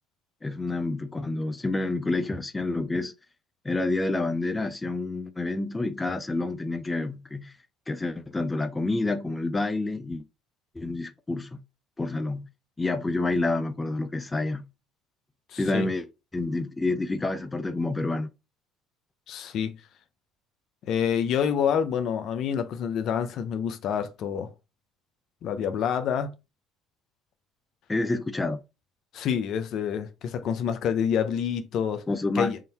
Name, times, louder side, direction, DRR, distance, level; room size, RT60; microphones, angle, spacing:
voice 1, 0.4-3.1 3.6-7.5 7.9-10.2 10.8-11.6 12.0-12.5 12.8-14.7 15.6-16.1 16.3-18.3 27.9-28.6 32.1-32.5, left 2 dB, 15° left, 0.5 m, -28 dB
voice 2, 15.5-15.9 19.3-19.8 20.8-24.5 25.4-26.3 29.1-32.0 32.3-32.6, left 8 dB, 60° left, 0.6 m, -27 dB
3.7 x 2.7 x 4.3 m
supercardioid pair, 85°, 0 cm